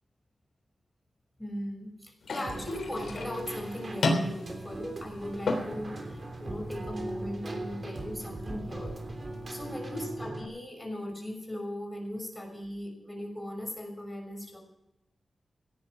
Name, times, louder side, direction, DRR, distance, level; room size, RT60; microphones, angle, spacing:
voice 1, 1.4-9.0 9.5-14.6, left 1 dB, 10° left, 2 dB, 6.1 m, -38 dB
sound 1, 2.2-10.2, left 2 dB, 85° left, 3.5 m, -36 dB
Keyboard (musical), 2.5-10.5, right 2 dB, 45° right, 3.1 m, -39 dB
17.5 x 11.0 x 6.4 m, 0.83 s
wide cardioid pair, 100°, 0 cm